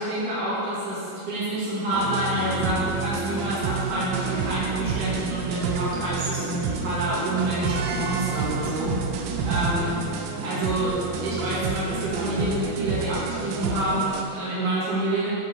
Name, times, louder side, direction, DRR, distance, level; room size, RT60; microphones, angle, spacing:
voice 1, 0.0-10.0 10.4-10.9 11.2-15.3, right 1 dB, 65° right, -9 dB, 3.9 m, -27 dB
sound 1, 1.9-14.2, right 5 dB, 85° right, 2.4 m, -29 dB
12.0 x 5.6 x 4.7 m, 2.5 s
omnidirectional pair, 3.8 m